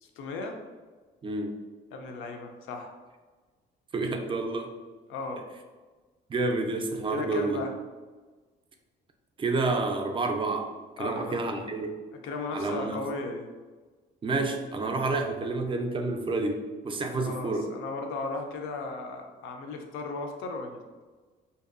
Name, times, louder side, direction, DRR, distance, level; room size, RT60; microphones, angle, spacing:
voice 1, 0.0-0.6 1.9-2.9 5.1-5.5 7.1-7.7 11.0-11.7 12.1-13.5 17.3-20.8, left 3 dB, 90° left, 4 dB, 0.4 m, -36 dB
voice 2, 1.2-1.5 3.9-4.7 6.3-7.6 9.4-10.7 11.0-12.0 12.5-13.0 14.2-17.7, right 3 dB, 25° right, 4 dB, 0.3 m, -29 dB
2.6 x 2.2 x 2.4 m, 1.3 s
cardioid pair, 90°, 20 cm